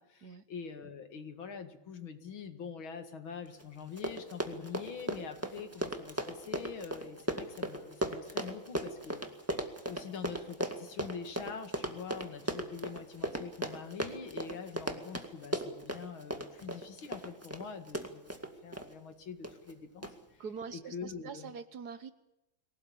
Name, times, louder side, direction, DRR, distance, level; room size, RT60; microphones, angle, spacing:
voice 1, 0.0-9.3 9.9-20.4 20.7-21.5, left 6 dB, 80° left, 8 dB, 2.7 m, -45 dB
Run, 3.6-3.7 3.9-18.9 19.4-19.7 20.0-20.1, right 1 dB, 5° right, 1.9 m, -37 dB
voice 2, 20.4-22.1, right 6 dB, 55° right, 12 dB, 1.5 m, -44 dB
24.0 x 18.0 x 8.6 m, 0.92 s
omnidirectional pair, 2.2 m